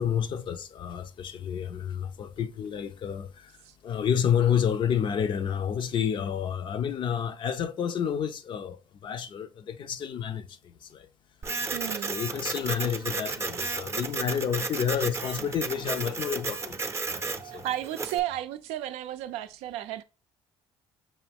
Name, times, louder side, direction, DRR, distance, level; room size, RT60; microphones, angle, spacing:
voice 1, 0.0-3.6 3.8-11.1 11.7-16.8 17.0-17.6, left 8 dB, 50° left, 0.5 m, -30 dB
Printer, 11.4-18.2, right 4 dB, 25° right, 0.6 m, -33 dB
voice 2, 11.7-12.2 17.5-20.0, right 13 dB, 75° right, 0.4 m, -33 dB
6.0 x 2.3 x 3.4 m
supercardioid pair, 75°, 11 cm